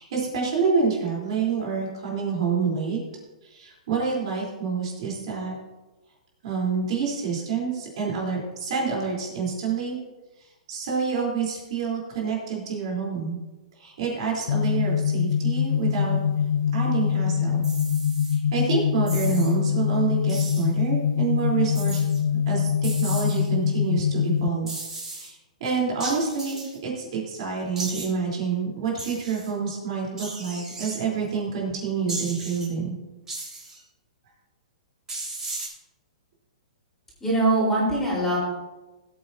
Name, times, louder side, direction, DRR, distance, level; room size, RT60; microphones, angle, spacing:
voice 1, 0.0-3.0 3.4-5.5 6.4-10.0 10.7-13.4 13.8-16.2 16.7-17.6 18.3-24.7 25.1-25.4 25.6-32.9, right 5 dB, 50° right, -3 dB, 3.9 m, -27 dB
sound 1, 14.5-24.5, left 8 dB, 75° left, 0.4 m, -24 dB
sound 2, 17.6-18.4 19.1-19.5 20.3-20.7 21.7-22.2 22.8-23.5 24.7-25.3 26.0-26.8 27.8-28.1 29.0-29.5 30.2-31.0 32.1-32.7 33.3-33.8 35.1-35.7, right 2 dB, 10° right, 3.8 m, -36 dB
voice 2, 37.2-38.4, right 2 dB, 10° left, -6 dB, 4.3 m, -22 dB
20.0 x 8.7 x 2.8 m, 1.1 s
hypercardioid pair, 160°, 4 cm